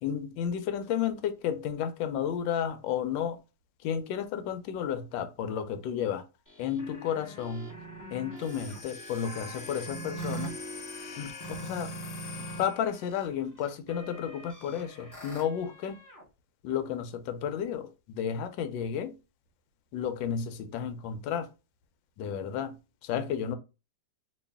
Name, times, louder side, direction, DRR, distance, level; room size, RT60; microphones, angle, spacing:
voice 1, 0.0-3.4 3.8-6.2 6.6-7.7 8.1-10.5 11.2-11.9 12.4-16.0 16.6-19.1 19.9-21.5 22.2-22.8 23.0-23.6, left 8 dB, 90° left, 1.3 m, -32 dB
sound 1, 6.5-12.7 13.0-16.2, right 2 dB, 20° left, 0.6 m, -43 dB
sound 2, 8.4-13.1, left 6 dB, 65° left, 1.0 m, -44 dB
3.0 x 2.7 x 3.4 m
omnidirectional pair, 2.0 m